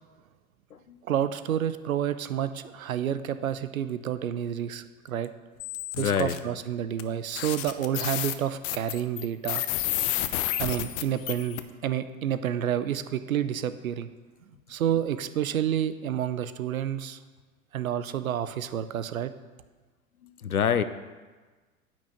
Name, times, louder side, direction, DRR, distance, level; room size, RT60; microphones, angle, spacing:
voice 1, 1.0-5.3 6.0-9.6 10.6-14.1 14.7-17.2 17.7-19.3, right 10 dB, 70° right, 13 dB, 0.8 m, -29 dB
sound 1, 5.6-6.4 7.0-7.1 7.3-11.6, left 14 dB, 40° left, 0.8 m, -30 dB
voice 2, 6.0-6.3 20.4-20.8, left 8 dB, 80° left, 13 dB, 0.8 m, -25 dB
10.5 x 6.1 x 7.3 m, 1.3 s
figure-of-eight pair, 90°, 43 cm